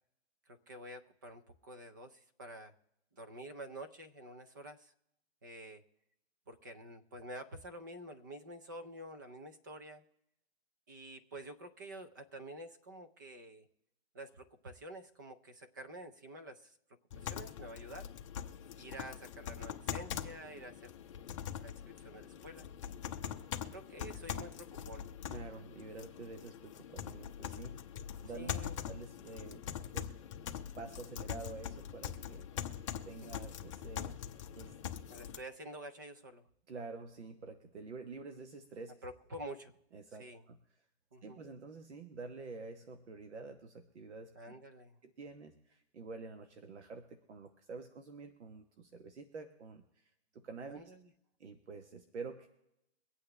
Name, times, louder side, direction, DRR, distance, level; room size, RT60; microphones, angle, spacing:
voice 1, 0.5-2.7 3.1-4.9 5.4-5.8 6.5-10.0 10.9-13.7 14.1-16.8 17.2-18.1 18.8-20.9 21.6-22.7 23.7-25.1 28.3-28.8 33.2-33.3 35.1-36.5 39.0-39.7 40.2-40.4 41.1-41.4 44.3-45.0 50.7-51.1, right 1 dB, 20° right, 8 dB, 0.5 m, -49 dB
sound 1, 17.1-35.4, left 9 dB, 30° left, 0.8 m, -43 dB
voice 2, 25.3-27.8 28.2-28.6 28.8-29.7 29.9-30.1 30.8-32.5 33.0-34.2 34.5-34.8 36.7-38.9 39.9-40.6 41.2-44.5 45.0-50.8 51.4-52.5, right 4 dB, 80° right, 7 dB, 1.3 m, -48 dB
23.5 x 8.6 x 3.3 m, 0.83 s
hypercardioid pair, 165°, 33 cm